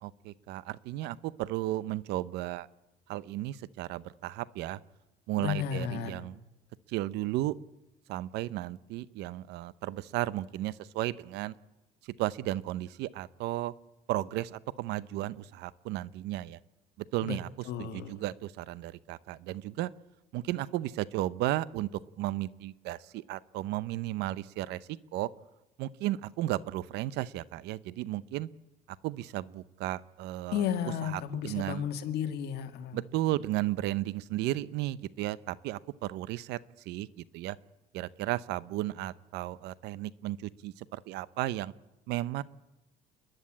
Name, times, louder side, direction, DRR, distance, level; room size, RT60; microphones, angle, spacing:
voice 1, 0.0-2.7 3.1-4.8 5.3-6.4 6.9-7.5 8.1-11.5 12.0-13.7 14.1-16.6 17.0-17.5 17.8-19.9 20.3-21.9 22.2-25.3 25.8-28.5 29.0-30.6 31.1-31.8 32.9-36.6 36.9-37.6 37.9-41.7 42.1-42.4, right 15 dB, 85° right, 19 dB, 0.7 m, -34 dB
voice 2, 5.4-6.2 17.2-17.4 17.6-18.2 30.5-33.0, left 9 dB, 75° left, 6 dB, 1.9 m, -33 dB
28.5 x 10.5 x 8.7 m, 1.0 s
cardioid pair, 110°, 17 cm